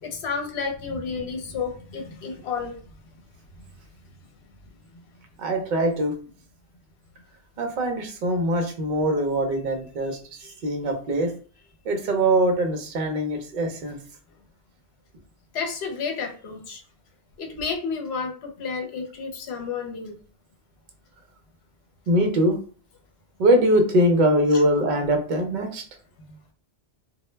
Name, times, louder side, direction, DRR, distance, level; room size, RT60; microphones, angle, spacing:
voice 1, 0.0-2.7 10.4-10.5 15.5-16.8 17.4-20.2, left 5 dB, 70° left, 2 dB, 0.9 m, -31 dB
voice 2, 5.4-6.1 7.6-11.3 11.8-14.0 22.1-22.6 23.4-25.8, right 1 dB, 55° right, 5 dB, 0.6 m, -22 dB
2.1 x 2.0 x 3.1 m, 0.41 s
omnidirectional pair, 1.1 m